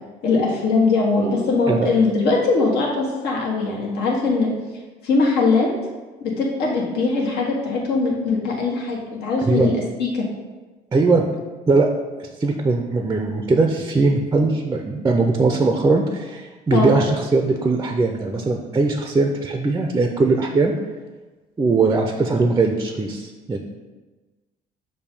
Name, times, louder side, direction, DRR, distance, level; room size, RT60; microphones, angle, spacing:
voice 1, 0.2-4.5 5.0-5.7 6.2-9.7 10.0-10.2 16.7-16.9, left 3 dB, 75° left, -3 dB, 1.5 m, -21 dB
voice 2, 9.4-9.7 10.9-11.3 11.7-11.9 12.4-20.7 21.6-23.6, right 3 dB, 20° right, 3 dB, 0.5 m, -20 dB
6.7 x 2.7 x 5.3 m, 1.2 s
cardioid pair, 110°, 17 cm